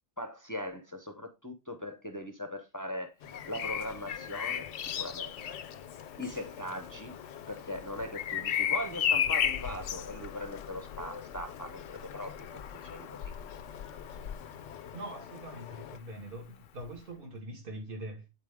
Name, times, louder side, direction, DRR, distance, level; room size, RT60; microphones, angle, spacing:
voice 1, 0.2-3.1 3.5-5.3 6.2-7.2 7.5-13.3, left 1 dB, 20° left, 0.7 m, -40 dB
sound 1, 3.2-16.0, left 8 dB, 85° left, 1.0 m, -47 dB
Bird vocalization bird call bird song, 3.3-15.1 16.8-17.0, left 9 dB, 60° left, 0.7 m, -35 dB
voice 2, 14.9-18.2, right 1 dB, 50° right, 1.7 m, -43 dB
8.7 x 4.3 x 3.5 m
omnidirectional pair, 1.2 m